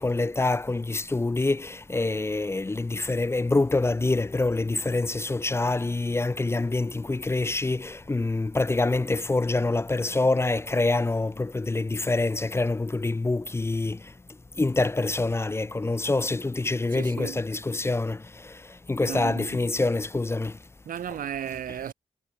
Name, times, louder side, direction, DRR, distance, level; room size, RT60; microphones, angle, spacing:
voice 1, 0.0-14.0 14.6-18.2 18.9-20.5, left 2 dB, 20° left, 0.5 m, -26 dB
voice 2, 16.9-17.4 19.0-19.6 20.9-21.9, right 9 dB, 90° right, 0.8 m, -35 dB
wide cardioid pair, 100°, 14 cm